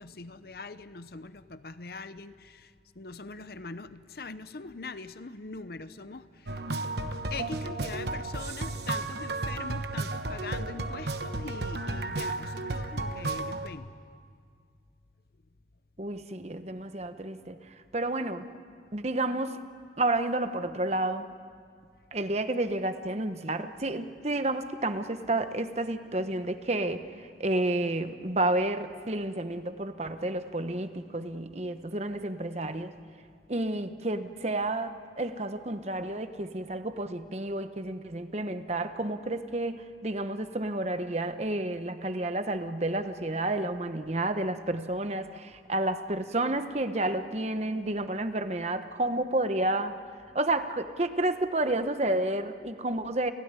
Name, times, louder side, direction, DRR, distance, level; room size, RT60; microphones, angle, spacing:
voice 1, 0.0-2.7 3.0-6.6 7.3-13.9, left 3 dB, 55° left, 13 dB, 0.8 m, -42 dB
sound 1, 6.5-13.7, right 2 dB, 65° right, 1.2 m, -33 dB
voice 2, 16.0-17.6 17.9-18.5 18.9-19.6 20.0-21.3 22.1-27.0 27.4-32.9 33.5-50.0 50.3-53.3, right 2 dB, 35° right, 9 dB, 1.1 m, -30 dB
29.5 x 16.5 x 9.8 m, 2.2 s
head